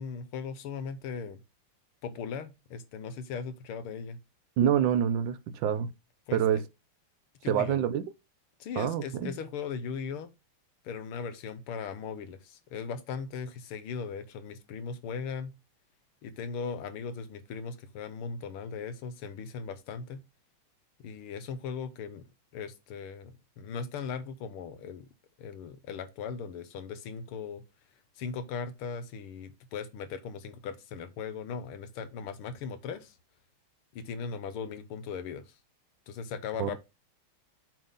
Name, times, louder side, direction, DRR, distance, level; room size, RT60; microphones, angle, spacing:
voice 1, 0.0-1.4 2.0-4.2 6.3-6.6 7.4-7.8 8.6-10.3 10.8-15.5 16.2-20.2 21.0-22.3 22.5-25.1 25.4-27.6 28.2-33.2 33.9-35.6 36.1-36.8, left 6 dB, 80° left, 1.7 m, -38 dB
voice 2, 4.6-5.9 6.3-6.6 7.5-8.1 8.8-9.3 36.6-36.8, right 9 dB, 75° right, 1.1 m, -26 dB
7.6 x 3.7 x 5.4 m
omnidirectional pair, 2.4 m